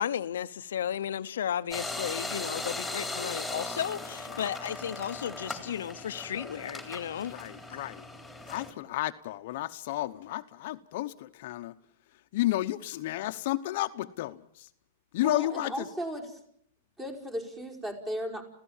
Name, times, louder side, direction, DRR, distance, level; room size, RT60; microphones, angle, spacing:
voice 1, 0.0-7.4 7.7-7.9, left 9 dB, 85° left, 0.8 m, -34 dB
sound 1, 1.7-8.7, left 2 dB, ahead, 3.7 m, -38 dB
voice 2, 7.3-8.0 8.5-11.7 12.3-14.7 15.1-15.9, left 15 dB, 55° left, 0.9 m, -32 dB
voice 3, 15.2-16.3 17.0-18.4, equal, 15° right, 5.2 m, -35 dB
30.0 x 16.0 x 7.3 m
supercardioid pair, 145°, 0 cm